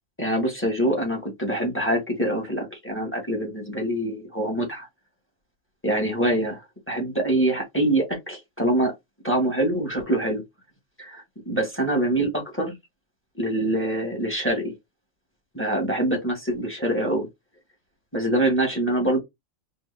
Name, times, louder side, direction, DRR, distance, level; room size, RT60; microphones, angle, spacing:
voice 1, 0.2-4.9 5.8-8.9 9.2-10.4 11.0-12.8 13.4-14.8 15.5-17.3 18.1-19.2, right 1 dB, 10° left, 1.4 m, -25 dB
4.4 x 2.8 x 3.2 m
omnidirectional pair, 1.4 m